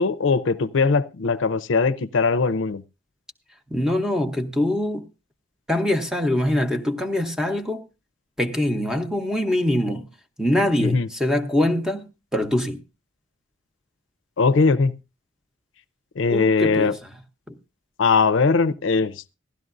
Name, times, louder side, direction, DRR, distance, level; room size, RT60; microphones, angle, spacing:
voice 1, 0.0-2.8 10.8-11.1 14.4-14.9 16.2-17.0 18.0-19.3, left 4 dB, 70° left, 0.5 m, -20 dB
voice 2, 3.7-5.1 5.7-7.9 8.4-10.1 10.4-12.8 16.3-17.0 17.5-17.6, left 1 dB, 5° right, 0.8 m, -23 dB
16.0 x 12.5 x 2.6 m
head